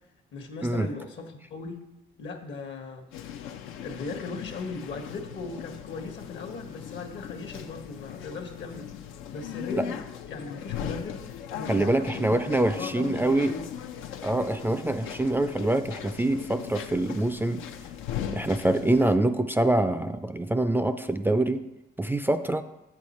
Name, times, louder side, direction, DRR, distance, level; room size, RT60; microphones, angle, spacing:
voice 1, 0.3-1.9 2.2-3.0 3.8-8.9 9.3-10.0 10.3-11.2 11.5-13.7, left 3 dB, 65° left, 5 dB, 1.2 m, -38 dB
sound 1, 3.1-19.2, left 9 dB, 90° left, 0.5 m, -39 dB
voice 2, 11.7-13.5 14.2-17.6 18.3-21.6 22.0-22.6, right 1 dB, 10° right, 9 dB, 0.3 m, -25 dB
7.8 x 6.4 x 4.2 m, 0.95 s
cardioid pair, 90°, 20 cm